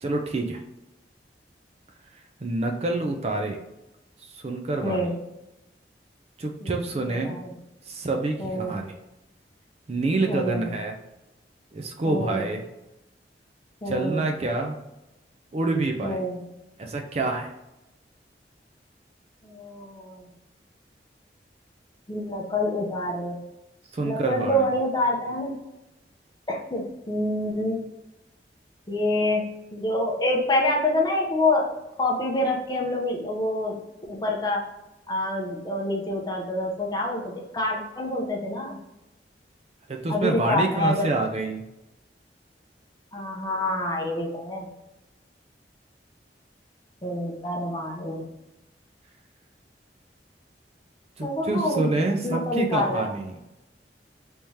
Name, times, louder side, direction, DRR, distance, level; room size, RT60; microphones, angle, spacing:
voice 1, 0.0-0.6 2.4-3.6 4.2-5.1 6.4-7.3 7.8-8.9 9.9-11.0 11.7-12.6 13.9-14.8 15.5-16.2 16.8-17.5 23.9-24.7 39.9-41.6 51.2-53.4, right 2 dB, 35° right, 3 dB, 0.4 m, -27 dB
voice 2, 4.8-5.1 6.6-6.7 7.0-7.5 8.4-8.7 10.3-10.7 12.0-12.5 13.8-14.2 16.0-16.4 19.4-20.3 22.1-23.3 24.0-25.6 26.5-27.8 28.9-31.7 32.0-33.8 34.1-34.6 35.1-38.8 40.1-41.1 43.1-44.7 47.0-48.3 51.2-51.9 52.2-53.1, left 1 dB, 25° left, -1 dB, 0.6 m, -27 dB
3.5 x 2.8 x 3.1 m, 0.92 s
head